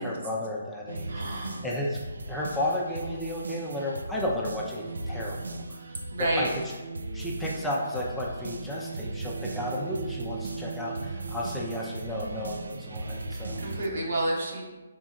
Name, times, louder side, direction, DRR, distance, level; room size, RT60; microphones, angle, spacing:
voice 1, 0.0-2.0 2.3-6.5 7.1-13.6, left 1 dB, 5° left, -4 dB, 0.5 m, -33 dB
sound 1, 0.9-13.9, right 2 dB, 85° right, 0.3 m, -37 dB
voice 2, 1.1-1.6 6.1-6.5 13.3-14.6, right 1 dB, 65° right, -2 dB, 1.1 m, -30 dB
3.9 x 3.7 x 2.4 m, 1.2 s
hypercardioid pair, 150°, 0 cm